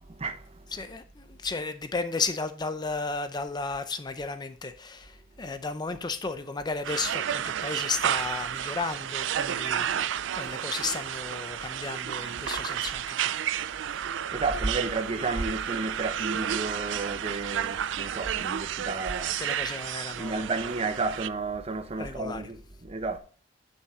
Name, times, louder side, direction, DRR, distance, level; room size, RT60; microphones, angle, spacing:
voice 1, 0.2-0.6 14.3-19.4 20.2-23.2, right 3 dB, 30° right, 0.8 m, -32 dB
voice 2, 0.7-13.3 19.4-20.5 22.0-22.4, left 4 dB, 20° left, 0.5 m, -34 dB
sound 1, 6.8-21.3, right 10 dB, 75° right, 0.4 m, -31 dB
9.6 x 5.6 x 3.6 m
head